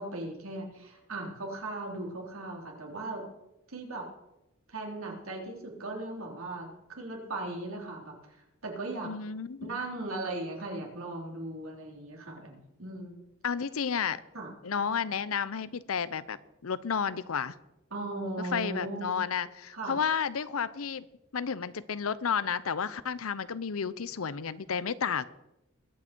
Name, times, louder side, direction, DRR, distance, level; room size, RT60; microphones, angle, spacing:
voice 1, 0.0-3.3 3.7-4.1 4.7-8.2 8.6-9.1 9.6-13.2 14.3-14.5 17.9-19.2 19.7-20.0, right 2 dB, 75° right, 0 dB, 3.6 m, -38 dB
voice 2, 9.0-9.7 13.4-14.2 14.6-16.4 16.6-17.5 18.4-21.1 21.3-25.3, left 6 dB, 80° left, 17 dB, 0.7 m, -31 dB
21.5 x 8.9 x 4.5 m, 0.89 s
head